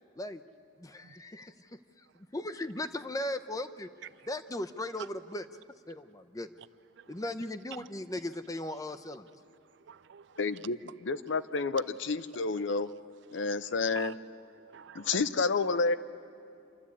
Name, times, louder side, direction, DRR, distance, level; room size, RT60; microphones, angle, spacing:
voice 1, 0.8-2.1 2.3-3.9 4.3-5.4 5.9-6.5 7.1-9.3, left 1 dB, 20° left, 0.7 m, -37 dB
voice 2, 9.6-10.6 12.3-12.4 13.3-14.1 14.6-15.3, right 7 dB, 65° right, 0.4 m, -48 dB
voice 3, 10.4-10.8 11.0-12.9 13.3-14.1 14.9-16.0, left 4 dB, 70° left, 0.6 m, -29 dB
28.0 x 12.5 x 8.5 m
head